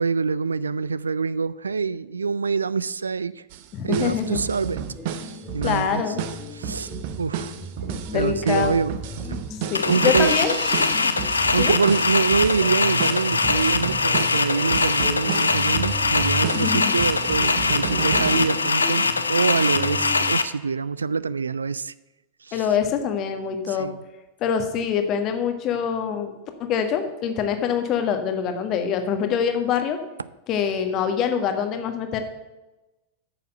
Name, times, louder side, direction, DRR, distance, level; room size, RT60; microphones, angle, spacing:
voice 1, 0.0-3.4 3.8-4.8 5.5-6.0 6.5-6.9 7.2-7.5 7.8-9.0 9.8-10.4 11.5-21.9 22.4-22.7 23.7-24.0, right 5 dB, 75° right, 0.3 m, -25 dB
sound 1, 3.5-3.6 3.9-18.5, right 8 dB, 50° right, 0.7 m, -32 dB
voice 2, 3.7-4.4 5.6-6.2 7.9-8.7 9.2-9.4 9.7-10.6 11.0-11.1 11.6-11.7 16.5-16.9 22.5-23.9 24.4-30.0 30.5-32.2, left 7 dB, 35° left, 1.4 m, -25 dB
sound 2, 3.8-20.4, equal, 5° left, 1.2 m, -38 dB
sound 3, 9.8-20.4, left 4 dB, 75° left, 0.6 m, -22 dB
8.9 x 7.2 x 6.6 m
figure-of-eight pair, 90°, 0 cm